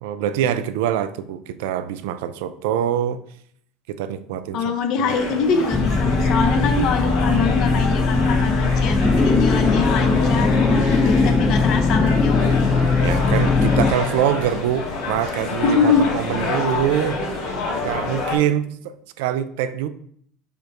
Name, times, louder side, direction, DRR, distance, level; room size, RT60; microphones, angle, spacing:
voice 1, 0.0-3.2 3.9-4.8 13.0-17.2 17.8-19.9, right 10 dB, 85° right, 13 dB, 0.3 m, -24 dB
voice 2, 4.5-12.7 15.6-16.0, left 5 dB, 55° left, 7 dB, 0.6 m, -23 dB
sound 1, 5.0-18.4, left 3 dB, 75° left, 2.0 m, -28 dB
sound 2, 5.7-13.9, left 3 dB, 15° left, 0.6 m, -19 dB
5.2 x 2.1 x 4.7 m, 0.63 s
cardioid pair, 130°, 0 cm